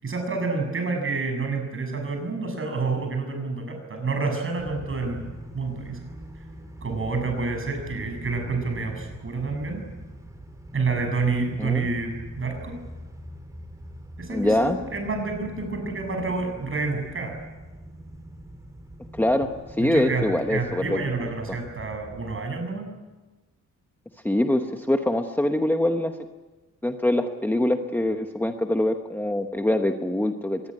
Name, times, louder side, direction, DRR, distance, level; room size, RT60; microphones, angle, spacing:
voice 1, 0.0-6.0 6.8-9.8 10.7-12.8 14.2-17.4 19.8-22.9, right 4 dB, 40° right, 4 dB, 7.2 m, -28 dB
sound 1, 4.6-22.4, right 1 dB, 10° right, 3.8 m, -43 dB
voice 2, 14.3-14.8 19.1-21.0 24.2-26.1 26.8-30.6, left 1 dB, 5° left, 5 dB, 1.0 m, -24 dB
24.5 x 20.0 x 9.8 m, 1.2 s
wide cardioid pair, 165°, 32 cm